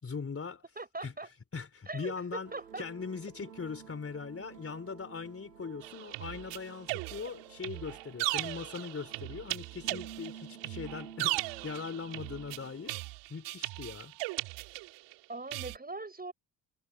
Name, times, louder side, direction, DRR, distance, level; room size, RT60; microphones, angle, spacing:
voice 1, 0.0-0.6 1.0-1.1 1.5-2.5 2.8-12.9 13.3-14.2, left 5 dB, 30° left, 4.0 m, -40 dB
voice 2, 0.7-1.3 1.9-2.8 15.3-16.3, right 3 dB, 20° right, 6.6 m, -41 dB
sound 1, 2.4-13.0, right 8 dB, 85° right, 1.6 m, -52 dB
sound 2, 5.8-15.1 15.5-15.8, right 24 dB, 65° right, 2.9 m, -37 dB
figure-of-eight pair, 45°, 47 cm